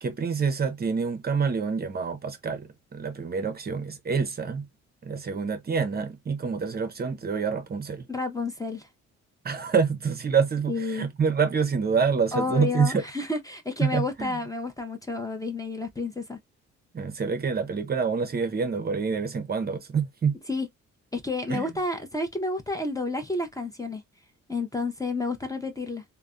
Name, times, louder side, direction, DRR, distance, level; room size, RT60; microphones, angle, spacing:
voice 1, 0.0-4.7 5.0-8.1 9.4-13.0 13.8-14.3 16.9-20.3 21.5-21.7, right 5 dB, 30° right, 0.6 m, -27 dB
voice 2, 8.1-8.9 10.7-11.1 12.3-16.4 20.5-20.7 21.1-24.0 24.5-26.0, left 3 dB, 10° left, 0.6 m, -30 dB
3.2 x 2.0 x 2.4 m
cardioid pair, 90°, 30 cm